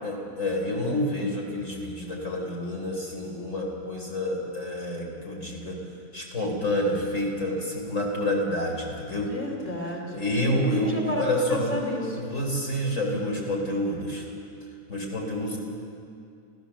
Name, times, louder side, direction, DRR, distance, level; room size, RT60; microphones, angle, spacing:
voice 1, 0.0-5.8 6.1-9.3 10.1-11.8 12.2-14.3 14.9-15.6, left 1 dB, 65° left, -1 dB, 4.4 m, -28 dB
voice 2, 9.2-12.2, left 1 dB, 10° left, 0 dB, 2.8 m, -32 dB
27.5 x 15.0 x 7.3 m, 2.4 s
omnidirectional pair, 1.4 m